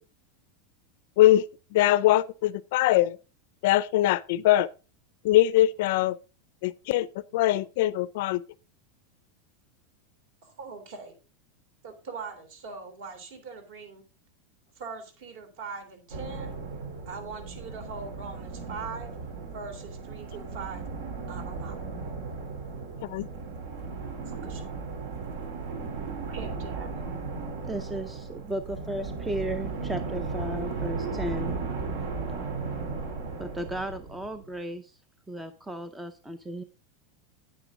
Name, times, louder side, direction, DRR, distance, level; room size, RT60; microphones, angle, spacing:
voice 1, 1.7-3.2 3.6-4.7 5.2-6.2 6.6-7.1 7.3-8.4 23.0-23.3, left 14 dB, 55° left, 0.5 m, -22 dB
voice 2, 10.4-11.2 11.8-14.0 14.8-16.6 17.1-19.1 19.5-20.9 21.3-21.8 24.2-24.6 26.3-26.9, right 4 dB, 55° right, 3.2 m, -41 dB
sound 1, 16.1-34.5, right 4 dB, 70° right, 3.1 m, -36 dB
voice 3, 27.6-31.6 33.4-35.0 35.3-36.6, right 1 dB, 5° right, 0.5 m, -35 dB
9.5 x 9.2 x 3.6 m
supercardioid pair, 175°, 0 cm